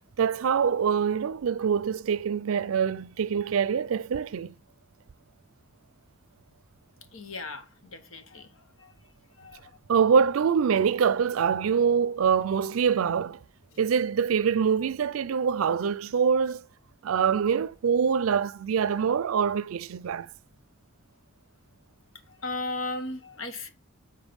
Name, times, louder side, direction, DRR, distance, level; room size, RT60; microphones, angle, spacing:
voice 1, 0.2-4.5 9.9-13.4 13.8-16.6 17.0-20.3, right 6 dB, 85° right, 0.4 m, -24 dB
voice 2, 7.1-8.5 8.8-8.9 9.4-9.7 22.4-23.7, left 2 dB, 80° left, 1.1 m, -36 dB
7.1 x 4.5 x 5.2 m
head